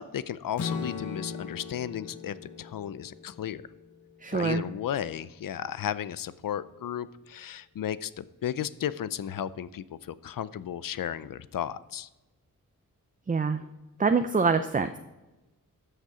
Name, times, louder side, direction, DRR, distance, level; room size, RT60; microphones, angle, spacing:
voice 1, 0.0-3.6 4.3-12.1, left 10 dB, 75° left, 16 dB, 0.5 m, -34 dB
Strum, 0.6-4.7, left 5 dB, 60° left, 1.2 m, -39 dB
voice 2, 4.2-4.6 13.3-13.6 14.0-15.0, right 4 dB, 25° right, 8 dB, 0.5 m, -25 dB
13.0 x 6.6 x 4.9 m, 1.1 s
wide cardioid pair, 100°, 33 cm